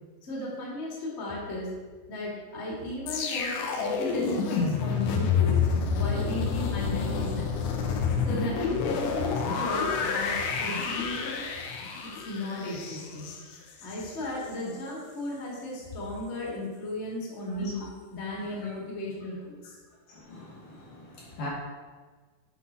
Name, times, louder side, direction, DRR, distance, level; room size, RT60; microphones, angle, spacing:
voice 1, 0.2-1.7 2.1-5.6 6.0-7.5 8.2-11.4 12.0-13.3 13.8-17.8 18.1-19.7, left 1 dB, 30° left, -5 dB, 1.3 m, -35 dB
sound 1, 3.1-14.2 14.5-14.7, left 5 dB, 85° left, 2.9 m, -28 dB
voice 2, 20.1-21.5, left 1 dB, 65° left, -4 dB, 2.5 m, -41 dB
8.2 x 4.0 x 5.5 m, 1.4 s
omnidirectional pair, 4.6 m